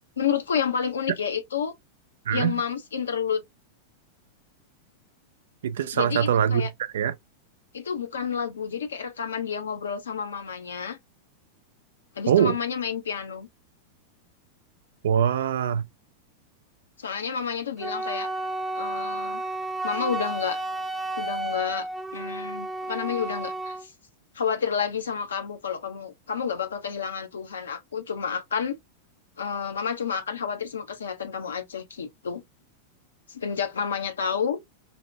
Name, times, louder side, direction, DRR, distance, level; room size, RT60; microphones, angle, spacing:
voice 1, 0.2-1.7 2.3-3.4 5.9-6.7 7.7-11.0 12.2-13.5 17.0-18.3 18.8-19.4 19.8-20.6 21.2-23.9 24.3-28.8 29.4-32.4 33.3-34.6, left 7 dB, 85° left, 0.7 m, -30 dB
voice 2, 5.6-6.6 6.9-7.1 12.3-12.5 15.0-15.8, right 9 dB, 75° right, 0.4 m, -22 dB
Wind instrument woodwind instrument, 17.8-23.9, right 2 dB, 10° right, 0.4 m, -32 dB
2.7 x 2.1 x 2.6 m
hypercardioid pair, 105°, 0 cm